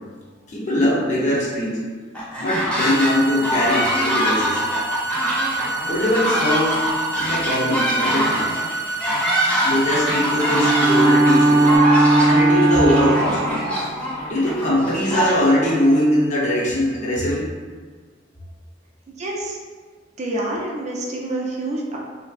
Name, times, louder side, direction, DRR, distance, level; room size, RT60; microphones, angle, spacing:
voice 1, 0.5-1.8 2.4-4.6 5.9-6.8 7.2-8.4 9.6-13.4 14.3-17.5, left 1 dB, 40° left, -5 dB, 0.7 m, -21 dB
sound 1, 2.1-3.1 3.4-15.7, equal, 5° left, 0.7 m, -24 dB
sound 2, 2.8-11.8, right 3 dB, 75° left, 0.8 m, -29 dB
Bowed string instrument, 10.5-13.5, right 2 dB, 85° right, 0.6 m, -16 dB
voice 2, 19.2-19.6 20.2-22.0, right 1 dB, 35° right, -2 dB, 0.4 m, -27 dB
3.0 x 2.6 x 2.4 m, 1.5 s
head